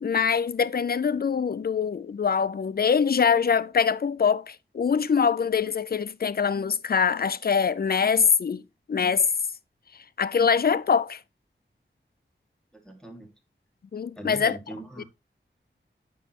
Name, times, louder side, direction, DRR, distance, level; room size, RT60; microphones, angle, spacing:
voice 1, 0.0-8.6 8.9-9.3 10.2-11.2 13.9-14.6 15.0-15.1, left 6 dB, 50° left, 0.5 m, -23 dB
voice 2, 12.7-13.3 14.2-15.0, right 1 dB, 5° left, 2.1 m, -40 dB
9.0 x 6.3 x 2.9 m
wide cardioid pair, 80°, 20 cm